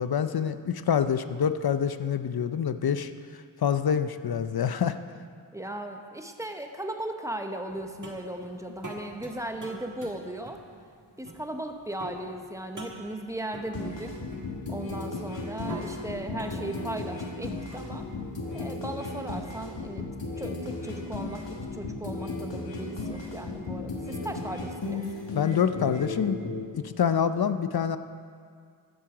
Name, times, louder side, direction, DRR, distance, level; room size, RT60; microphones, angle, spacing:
voice 1, 0.0-3.1 3.6-5.0 25.3-26.4 26.7-28.0, left 8 dB, 60° left, 12 dB, 0.6 m, -26 dB
voice 2, 5.5-10.6 11.2-14.2 14.7-18.1 18.5-20.1 20.4-25.0, right 1 dB, 5° right, 5 dB, 0.9 m, -37 dB
sound 1, 7.7-19.2, right 1 dB, 45° right, 1.7 m, -45 dB
sound 2, 13.7-26.6, left 3 dB, 85° left, 1.5 m, -35 dB
13.0 x 7.5 x 5.0 m, 2.2 s
wide cardioid pair, 55°, 43 cm